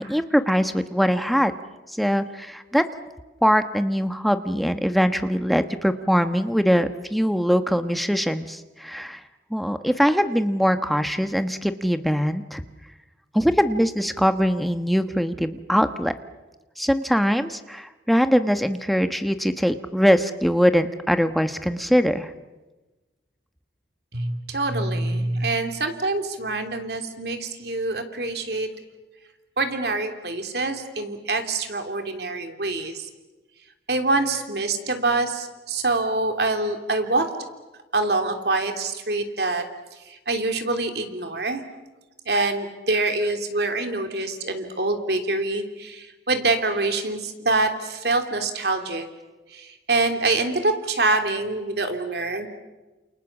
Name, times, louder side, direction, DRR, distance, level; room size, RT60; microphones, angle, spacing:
voice 1, 0.0-1.5 1.9-2.8 3.4-9.2 9.5-12.6 13.3-16.1 16.8-22.3, equal, ahead, 9 dB, 1.1 m, -22 dB
voice 2, 24.1-28.7 29.6-33.1 33.9-37.3 37.9-39.6 39.9-41.6 42.2-49.1 49.5-52.6, right 2 dB, 60° right, 6 dB, 3.1 m, -25 dB
28.5 x 28.5 x 7.3 m, 1.2 s
head